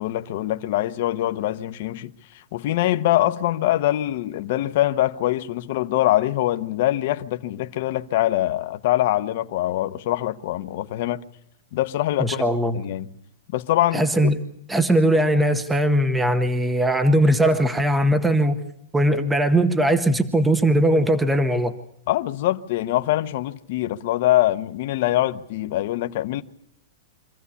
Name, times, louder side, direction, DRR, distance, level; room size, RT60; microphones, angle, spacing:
voice 1, 0.0-2.1 2.5-11.2 11.7-12.4 12.7-13.1 13.5-14.3 22.1-26.4, left 14 dB, 45° left, 0.9 m, -23 dB
voice 2, 12.2-12.8 13.9-14.3 14.7-18.6 18.9-21.7, right 1 dB, 5° right, 0.9 m, -19 dB
25.0 x 15.5 x 8.4 m
supercardioid pair, 170°, 0 cm